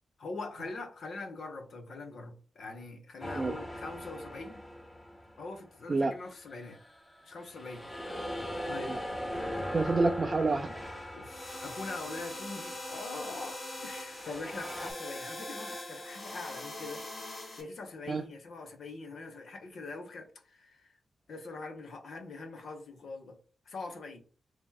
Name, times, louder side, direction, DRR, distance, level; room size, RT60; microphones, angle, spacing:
voice 1, 0.2-4.6 5.4-6.8 7.2-7.9 8.6-9.0 11.1-17.0 17.6-20.9 21.3-23.4 23.7-24.2, left 3 dB, 75° left, 0.8 m, -43 dB
sound 1, 3.2-5.7 6.3-12.7 13.8-14.9, equal, 25° left, 1.0 m, -40 dB
voice 2, 9.7-10.8 18.1-18.2, right 3 dB, 45° right, 0.4 m, -28 dB
sound 2, 11.2-17.6, left 1 dB, 45° left, 1.3 m, -42 dB
2.9 x 2.9 x 3.7 m
cardioid pair, 75°, 0 cm